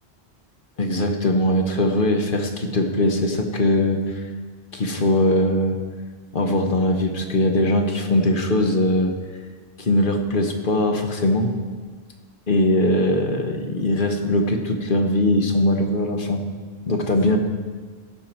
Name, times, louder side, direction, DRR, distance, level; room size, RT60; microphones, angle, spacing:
voice 1, 0.8-4.2 4.7-5.8 6.3-9.1 9.8-11.5 12.5-16.4 16.9-17.4, left 1 dB, 55° left, 4 dB, 1.1 m, -21 dB
16.0 x 6.6 x 4.4 m, 1.5 s
omnidirectional pair, 1.1 m